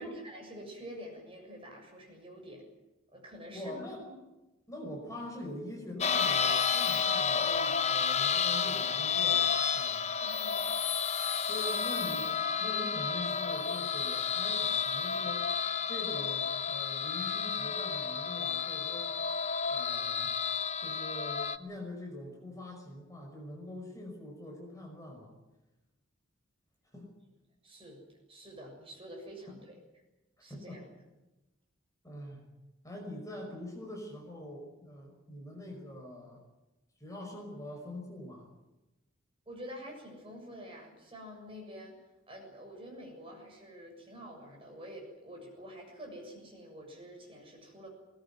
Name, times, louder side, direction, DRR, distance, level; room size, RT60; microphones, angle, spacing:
voice 1, 0.0-2.6 3.1-3.8 10.1-10.7 27.6-29.8 30.4-30.9 39.5-41.9 42.3-47.9, equal, 25° right, 1 dB, 7.1 m, -47 dB
voice 2, 3.5-4.2 4.7-10.1 11.5-15.5 15.9-19.1 19.7-20.4 20.8-25.4 26.9-27.1 30.5-30.8 32.0-32.4 32.8-36.4 37.0-38.5, left 1 dB, 15° left, 1 dB, 5.6 m, -44 dB
sound 1, 6.0-21.6, left 6 dB, 30° left, 0.8 m, -31 dB
21.0 x 20.0 x 9.4 m, 1.0 s
head